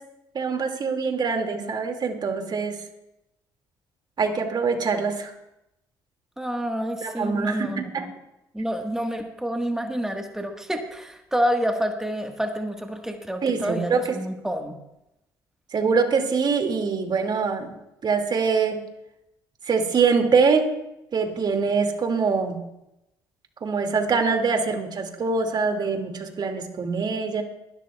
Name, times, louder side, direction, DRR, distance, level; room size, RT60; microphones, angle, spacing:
voice 1, 0.3-2.8 4.2-5.3 7.0-8.1 13.4-14.0 15.7-18.8 19.6-20.7 21.1-22.6 23.6-27.4, right 5 dB, 45° right, 4 dB, 2.3 m, -24 dB
voice 2, 6.4-8.1 8.5-14.7, equal, 5° right, 4 dB, 1.5 m, -28 dB
23.0 x 12.0 x 2.4 m, 0.88 s
hypercardioid pair, 55°, 10 cm